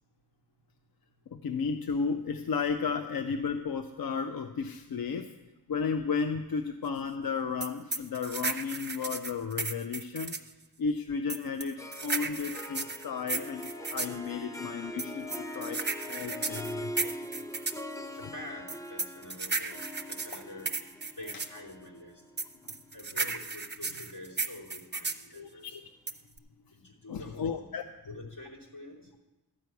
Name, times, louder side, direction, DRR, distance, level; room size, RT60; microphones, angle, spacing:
voice 1, 1.3-5.4 5.7-10.4 10.8-17.2 17.7-17.8 18.1-18.2 20.3-20.4 21.3-21.4 22.6-22.7 25.3-25.9 27.1-27.8, left 5 dB, 65° left, 7 dB, 0.6 m, -34 dB
sound 1, 7.6-10.5 11.3-14.2 15.0-17.8 18.7-21.6 22.4-25.3 26.1-26.4, right 4 dB, 25° right, 0.6 m, -34 dB
Harp, 11.8-23.2, equal, 10° left, 0.7 m, -42 dB
voice 2, 18.1-19.8 20.1-20.7 21.2-22.2 22.9-25.8 26.7-27.6 28.1-29.1, left 1 dB, 85° left, -5 dB, 3.1 m, -46 dB
13.0 x 4.6 x 8.2 m, 1.1 s
wide cardioid pair, 65°, 39 cm